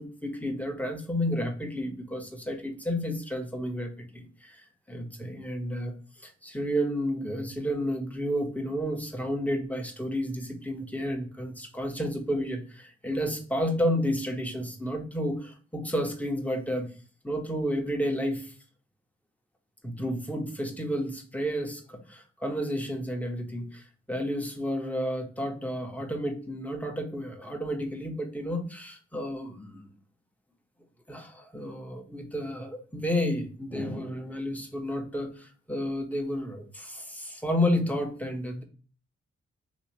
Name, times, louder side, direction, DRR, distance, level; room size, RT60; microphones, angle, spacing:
voice 1, 0.0-16.9 17.2-18.5 19.8-29.9 31.1-38.6, equal, 5° left, 3 dB, 1.0 m, -31 dB
3.0 x 2.8 x 4.2 m, 0.40 s
supercardioid pair, 45°, 30 cm